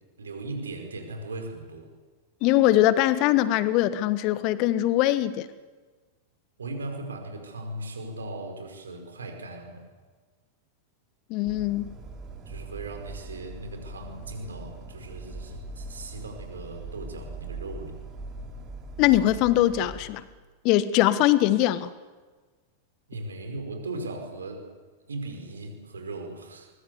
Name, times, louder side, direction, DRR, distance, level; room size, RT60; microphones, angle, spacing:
voice 1, 0.2-1.9 6.6-9.9 12.5-18.0 23.1-24.7 25.1-26.7, right 2 dB, 70° right, 4 dB, 5.2 m, -38 dB
voice 2, 2.4-5.5 11.3-11.9 19.0-20.2 20.6-21.9, left 14 dB, 40° left, 16 dB, 1.3 m, -22 dB
sound 1, 11.4-20.0, right 2 dB, 30° right, 4.5 m, -41 dB
24.0 x 21.5 x 8.3 m, 1.4 s
figure-of-eight pair, 90°, 0 cm